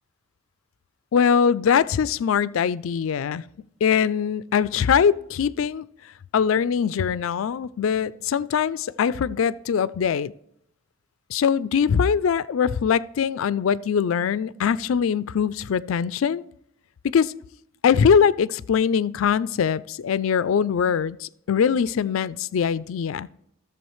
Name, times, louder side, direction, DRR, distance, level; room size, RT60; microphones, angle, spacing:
voice 1, 1.1-3.4 3.8-5.9 6.3-10.3 11.3-16.4 17.1-17.3 17.8-23.3, left 7 dB, 85° left, 0.4 m, -22 dB
14.5 x 7.0 x 3.1 m
head